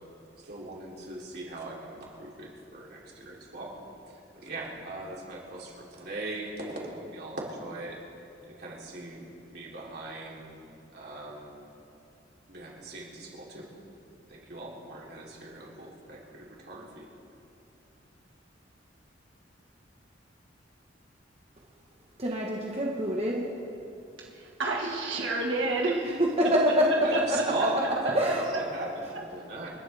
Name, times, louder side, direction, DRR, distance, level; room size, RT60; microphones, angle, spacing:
voice 1, 0.4-3.7 4.1-8.0 8.5-9.2 9.5-10.6 10.9-11.8 12.5-13.7 14.3-17.0 27.0-29.7, right 2 dB, 60° right, -4 dB, 3.4 m, -39 dB
voice 2, 22.2-23.4 26.2-26.9 27.3-27.4 28.1-28.5, equal, 35° right, -2 dB, 1.3 m, -25 dB
voice 3, 24.3-26.0 27.1-27.4 28.0-28.6 29.1-29.2, right 2 dB, 80° right, -1 dB, 1.6 m, -30 dB
29.0 x 11.5 x 3.5 m, 2.7 s
head